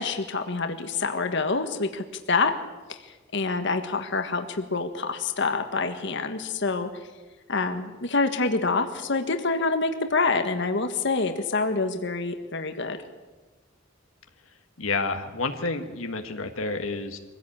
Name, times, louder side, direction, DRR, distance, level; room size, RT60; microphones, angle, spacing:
voice 1, 0.0-2.5 2.9-3.0 3.3-6.9 7.5-13.0, left 3 dB, 60° left, 7 dB, 1.6 m, -26 dB
voice 2, 14.8-17.2, left 3 dB, 85° left, 6 dB, 1.5 m, -29 dB
23.5 x 16.0 x 8.7 m, 1.2 s
head